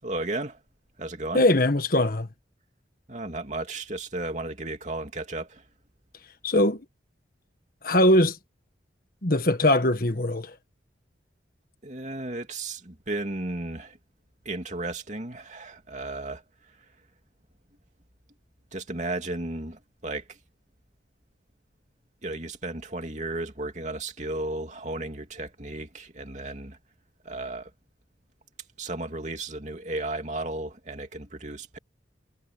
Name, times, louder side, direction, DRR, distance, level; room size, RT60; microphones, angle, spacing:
voice 1, 0.0-0.6 1.0-1.4 3.1-5.7 11.8-14.0 14.4-16.9 18.7-20.4 22.2-26.8 27.2-27.7 28.8-31.8, right 2 dB, 40° right, 2.9 m, -34 dB
voice 2, 1.3-2.3 6.4-6.8 7.8-8.4 9.2-10.5, left 1 dB, 50° left, 1.6 m, -21 dB
head